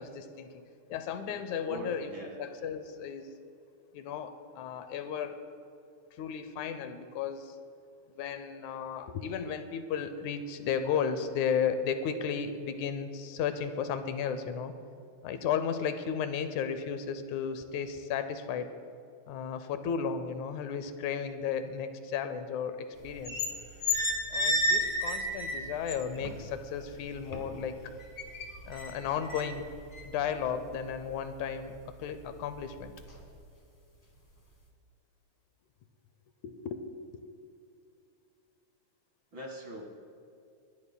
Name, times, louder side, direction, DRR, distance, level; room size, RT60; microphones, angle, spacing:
voice 1, 0.0-2.1 2.4-3.3 3.9-5.4 6.2-7.6 8.2-14.7 15.2-18.7 19.3-23.4 24.3-27.8 28.6-29.7 30.0-32.9 36.4-36.9 37.1-37.2, left 7 dB, 85° left, 10 dB, 2.1 m, -34 dB
voice 2, 1.7-2.3 39.3-39.8, equal, 45° right, 0 dB, 2.3 m, -41 dB
sound 1, 23.0-23.5 23.8-26.3 26.7-27.6 28.0-31.1 31.5-31.8 32.2-32.6 33.0-33.2, left 1 dB, 20° left, 0.9 m, -31 dB
29.0 x 11.0 x 2.2 m, 2.5 s
omnidirectional pair, 3.3 m